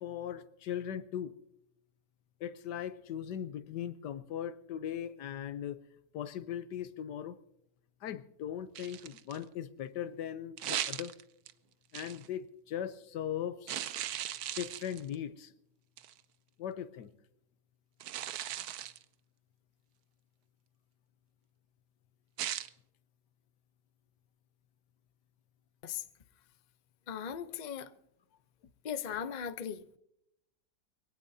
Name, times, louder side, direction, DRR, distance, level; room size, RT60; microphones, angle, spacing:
voice 1, 0.0-1.4 2.4-5.8 6.1-7.4 8.0-11.2 11.9-13.7 14.6-15.5 16.6-17.1, left 9 dB, 75° left, 1.4 m, -39 dB
sound 1, 8.8-9.4 10.6-11.5 11.9-12.3 13.7-15.2 16.0-16.2 18.0-19.0 22.4-22.7, right 11 dB, 70° right, 1.1 m, -38 dB
voice 2, 27.1-27.9 28.8-29.9, left 8 dB, 50° left, 0.5 m, -38 dB
23.0 x 17.5 x 2.7 m
omnidirectional pair, 1.8 m